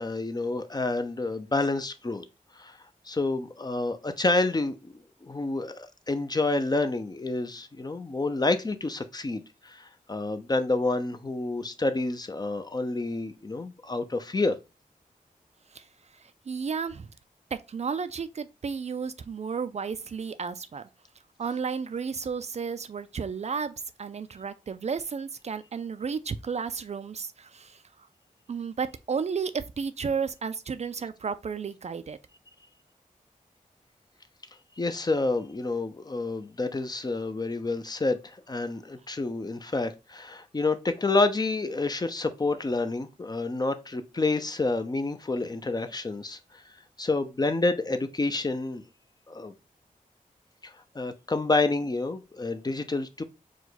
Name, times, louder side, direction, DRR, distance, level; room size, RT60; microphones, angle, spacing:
voice 1, 0.0-2.2 2.6-2.8 3.1-4.9 5.2-14.6 34.8-46.6 47.0-48.8 49.3-49.5 50.6-53.2, left 3 dB, 30° left, 0.5 m, -29 dB
voice 2, 16.1-17.1 17.5-20.8 21.4-23.7 24.0-28.1 28.5-32.2, right 6 dB, 50° right, 0.4 m, -33 dB
4.7 x 2.2 x 3.9 m
wide cardioid pair, 110°, 15 cm